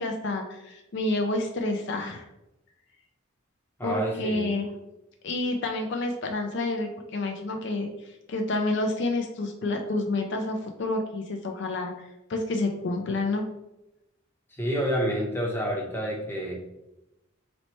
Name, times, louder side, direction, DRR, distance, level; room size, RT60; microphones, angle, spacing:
voice 1, 0.0-2.2 3.8-4.7 5.2-13.4, left 2 dB, 55° left, 3 dB, 0.4 m, -29 dB
voice 2, 3.8-4.6 14.6-16.6, equal, 10° left, -2 dB, 0.7 m, -28 dB
4.1 x 3.1 x 3.0 m, 0.92 s
head